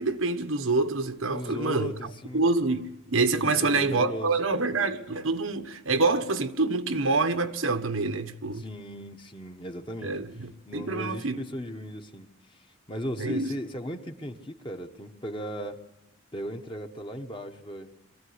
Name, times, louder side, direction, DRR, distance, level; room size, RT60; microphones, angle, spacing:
voice 1, 0.0-8.7 10.0-11.4 13.2-13.5, right 3 dB, 85° right, 1.3 m, -27 dB
voice 2, 1.2-2.4 3.4-4.3 8.5-10.2 10.7-12.3 12.5-12.6 12.9-15.8 16.3-17.9, equal, 25° left, 1.3 m, -37 dB
23.5 x 15.5 x 9.7 m
head